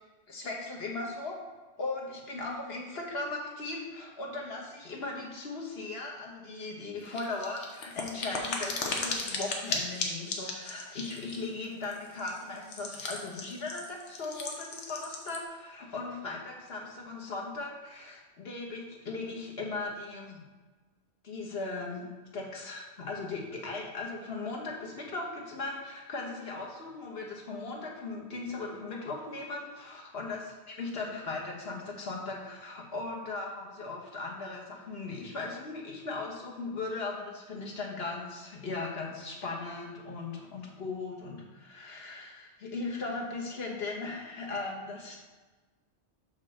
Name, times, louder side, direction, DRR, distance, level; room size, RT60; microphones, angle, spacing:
voice 1, 0.3-1.3 1.8-20.4 21.2-45.2, left 3 dB, 60° left, -1 dB, 1.5 m, -38 dB
sound 1, 7.1-15.4, left 3 dB, 85° left, 1.4 m, -37 dB
6.0 x 4.4 x 6.5 m, 1.3 s
omnidirectional pair, 1.2 m